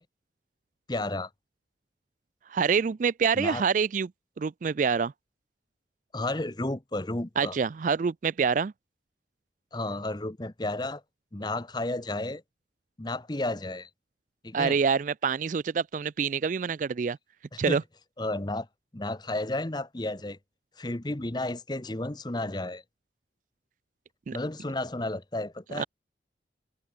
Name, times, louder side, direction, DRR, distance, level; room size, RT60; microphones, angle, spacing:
voice 1, 0.9-1.3 3.3-3.6 6.1-7.6 9.7-11.0 11.3-12.4 13.0-13.9 14.4-14.8 17.5-17.8 18.2-18.7 18.9-20.4 20.8-22.8 24.3-25.8, left 2 dB, 25° left, 0.9 m, -32 dB
voice 2, 2.5-4.1 4.4-5.1 7.4-8.7 14.5-17.2 17.6-17.8 24.3-24.4 25.8-25.9, right 6 dB, 45° right, 0.3 m, -26 dB
head